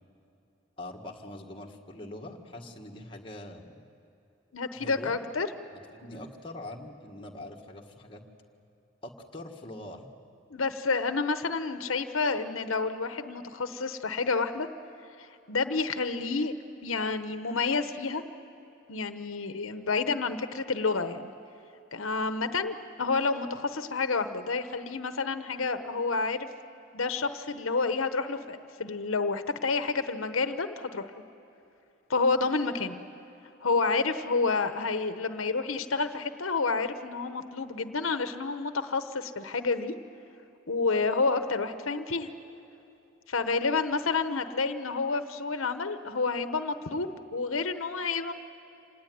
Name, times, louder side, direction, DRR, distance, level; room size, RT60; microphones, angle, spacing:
voice 1, 0.8-3.8 4.7-5.1 5.9-8.2 9.0-10.1, left 1 dB, 25° left, 0 dB, 1.7 m, -43 dB
voice 2, 4.5-5.5 6.1-6.2 10.5-14.7 15.5-16.5 16.8-18.2 18.9-21.3 21.9-26.5 26.9-31.1 32.1-33.0 33.6-39.9 40.7-42.3 43.3-48.3, left 4 dB, 90° left, 9 dB, 1.0 m, -29 dB
26.5 x 19.0 x 9.4 m, 2.9 s
head